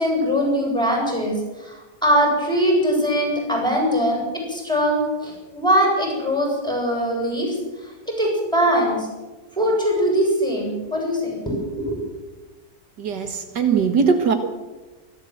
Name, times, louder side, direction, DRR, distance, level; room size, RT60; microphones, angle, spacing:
voice 1, 0.0-9.1 9.5-12.0, equal, ahead, -1 dB, 7.5 m, -22 dB
voice 2, 13.0-14.4, right 6 dB, 85° right, 6 dB, 2.2 m, -20 dB
27.5 x 12.5 x 7.8 m, 1.2 s
omnidirectional pair, 1.8 m